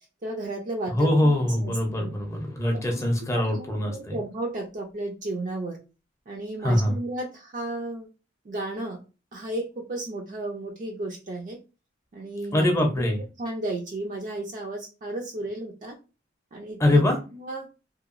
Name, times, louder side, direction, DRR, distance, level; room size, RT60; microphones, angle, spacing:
voice 1, 0.2-2.1 2.9-3.0 3.3-5.8 6.3-8.1 8.5-9.0 9.3-11.6 12.1-12.9 13.4-15.9 16.5-17.7, right 2 dB, 40° right, 0 dB, 0.4 m, -34 dB
voice 2, 0.9-4.2 6.6-7.0 12.5-13.2 16.8-17.2, left 1 dB, 15° left, 2 dB, 0.6 m, -23 dB
2.8 x 2.2 x 2.5 m, 0.32 s
head